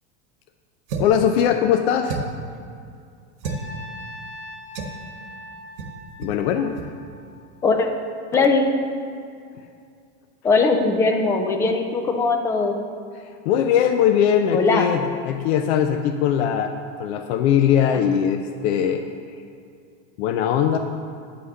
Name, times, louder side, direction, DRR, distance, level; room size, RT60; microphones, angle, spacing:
sound 1, 0.9-1.2 2.0-2.5 3.4-3.7 4.7-5.0 5.8-5.9 6.2-6.4 6.7-6.9, right 4 dB, 80° right, 1.4 m, -30 dB
voice 1, 1.0-2.2 6.2-6.7 13.4-19.0 20.2-20.8, left 9 dB, 65° left, 6 dB, 0.7 m, -20 dB
Trumpet, 3.4-7.7, left 1 dB, 45° left, 2.0 m, -41 dB
voice 2, 8.3-8.7 10.4-12.8 14.5-14.9, left 3 dB, 10° left, 4 dB, 0.3 m, -20 dB
9.8 x 5.8 x 6.5 m, 2.4 s
supercardioid pair, 165°, 35 cm